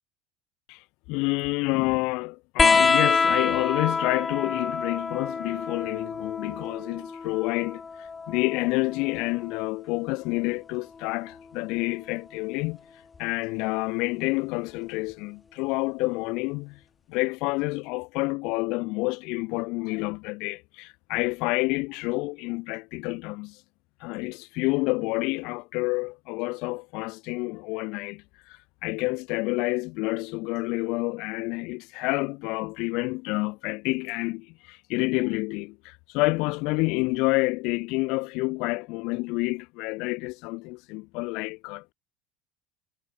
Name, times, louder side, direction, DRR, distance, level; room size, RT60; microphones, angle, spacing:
voice 1, 0.7-12.8 13.2-16.8 17.1-23.6 24.0-41.9, left 26 dB, 65° left, 4.8 m, -29 dB
sound 1, 2.6-9.7 11.0-11.9 13.2-13.3, left 4 dB, 15° left, 0.4 m, -27 dB
cardioid pair, 165°, 0 cm